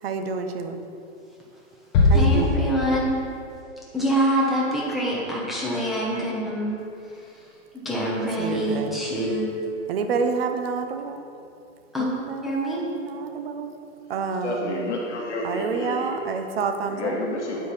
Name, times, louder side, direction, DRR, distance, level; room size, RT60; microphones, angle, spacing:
voice 1, 0.0-0.8 2.1-2.7 8.4-9.0 9.9-11.3 12.0-13.7 14.1-14.9 15.4-17.1, right 5 dB, 50° right, 7 dB, 0.9 m, -29 dB
sound 1, 1.9-3.3, left 2 dB, 25° left, 1.1 m, -20 dB
voice 2, 2.1-3.2 3.9-6.8 7.8-9.5 11.9-12.1 12.4-12.8, right 1 dB, ahead, -7 dB, 1.0 m, -25 dB
voice 3, 14.4-16.4 16.8-17.7, left 1 dB, 60° left, -1 dB, 1.5 m, -30 dB
8.9 x 8.0 x 4.2 m, 2.6 s
hypercardioid pair, 160°, 39 cm